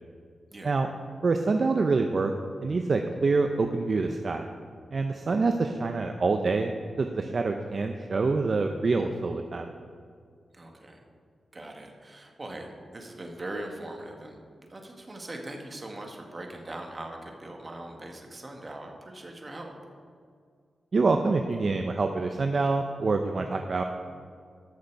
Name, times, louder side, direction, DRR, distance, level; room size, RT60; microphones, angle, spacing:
voice 1, 1.2-2.3 2.6-4.5 4.9-6.7 7.0-9.7 20.9-23.8, right 3 dB, 50° right, 5 dB, 0.6 m, -26 dB
voice 2, 10.5-11.0 11.5-14.4 14.7-19.8, right 1 dB, 35° right, 2 dB, 1.6 m, -41 dB
13.5 x 6.7 x 4.6 m, 2.1 s
cardioid pair, 75°, 0 cm